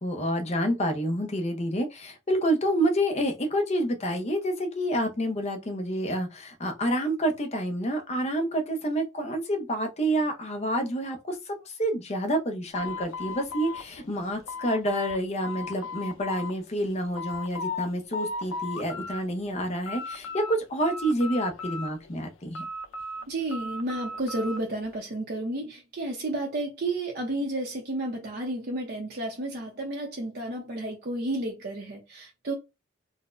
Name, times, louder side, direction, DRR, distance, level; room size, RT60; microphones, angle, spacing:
voice 1, 0.0-22.6, right 1 dB, 35° left, 0.7 m, -28 dB
sound 1, 12.7-15.2 15.4-16.5 16.9-17.9 18.1-19.2 19.6-20.5 20.8-22.1 22.5-24.6, left 3 dB, 90° left, 0.5 m, -36 dB
voice 2, 23.3-32.5, right 1 dB, 55° right, 0.7 m, -32 dB
3.9 x 2.1 x 2.5 m
head